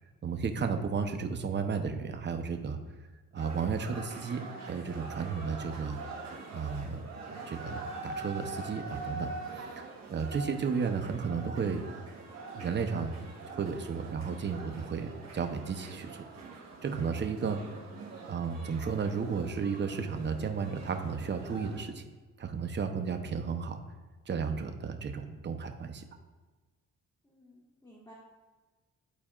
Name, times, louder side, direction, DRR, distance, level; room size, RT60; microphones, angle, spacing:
voice 1, 0.2-2.8 3.3-6.0 6.5-11.8 12.5-16.2 16.8-17.6 18.3-22.0 22.4-23.8 24.3-26.0, right 5 dB, 35° right, 6 dB, 0.8 m, -33 dB
sound 1, 3.4-21.8, right 3 dB, 65° right, 2.0 m, -44 dB
voice 2, 27.2-28.1, equal, 10° left, -5 dB, 1.6 m, -56 dB
12.0 x 4.2 x 2.4 m, 1.3 s
cardioid pair, 90°, 30 cm